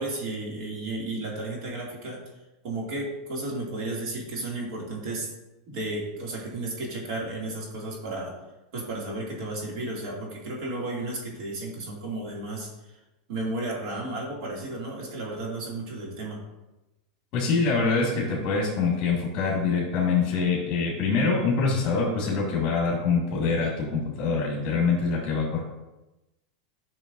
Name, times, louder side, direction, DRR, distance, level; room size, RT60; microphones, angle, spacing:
voice 1, 0.0-2.2 2.6-5.3 5.7-8.3 8.7-13.0 13.3-16.4, right 2 dB, 55° right, -3 dB, 2.4 m, -33 dB
voice 2, 17.3-25.6, left 4 dB, 35° left, -4 dB, 2.0 m, -25 dB
10.5 x 6.1 x 2.6 m, 1.0 s
supercardioid pair, 155°, 4 cm